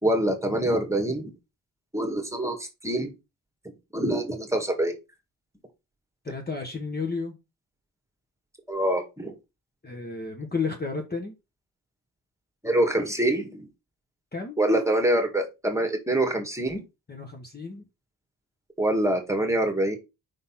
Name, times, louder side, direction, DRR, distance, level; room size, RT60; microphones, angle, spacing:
voice 1, 0.0-1.3 1.9-3.1 3.9-4.9 8.7-9.3 12.6-13.7 14.6-16.8 18.8-20.0, right 1 dB, 10° right, 4 dB, 1.8 m, -25 dB
voice 2, 6.2-7.4 9.8-11.4 14.3-14.6 17.1-17.8, left 4 dB, 25° left, 3 dB, 1.3 m, -32 dB
5.2 x 4.0 x 5.8 m, 0.25 s
cardioid pair, 105°, 35 cm